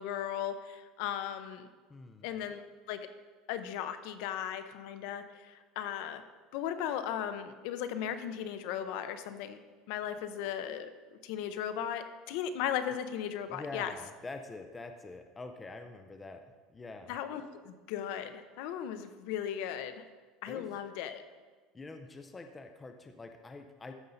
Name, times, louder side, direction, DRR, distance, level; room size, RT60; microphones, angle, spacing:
voice 1, 0.0-1.7 2.2-2.6 2.9-3.1 3.5-6.2 6.5-9.6 9.9-10.9 11.2-13.9 17.1-20.0 20.4-21.2, left 9 dB, 60° left, 10 dB, 0.6 m, -37 dB
voice 2, 1.9-2.3 13.5-16.4 16.7-17.2 20.5-20.8 21.7-23.9, left 3 dB, 10° left, 6 dB, 0.4 m, -45 dB
13.5 x 5.4 x 3.9 m, 1.4 s
cardioid pair, 175°, 0 cm